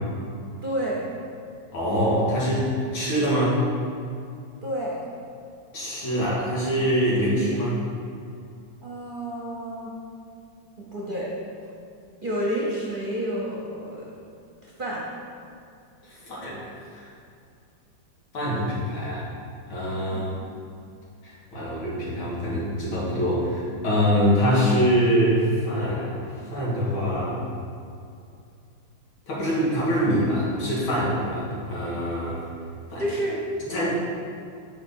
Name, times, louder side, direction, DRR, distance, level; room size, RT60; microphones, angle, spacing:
voice 1, 0.6-1.0 4.6-5.0 8.8-9.9 10.8-11.3 12.2-14.0 14.6-15.0 20.1-20.3 21.6-21.7 33.0-33.4 33.7-33.9, right 1 dB, 35° right, -5 dB, 0.9 m, -30 dB
voice 2, 1.7-2.7 2.9-3.6 5.7-7.8 16.0-17.1 18.3-19.3 19.7-20.3 21.2-27.4 29.3-32.5 32.9-33.0 33.7-33.9, equal, 90° left, -7 dB, 2.8 m, -24 dB
7.2 x 5.4 x 5.4 m, 2.5 s
omnidirectional pair, 2.1 m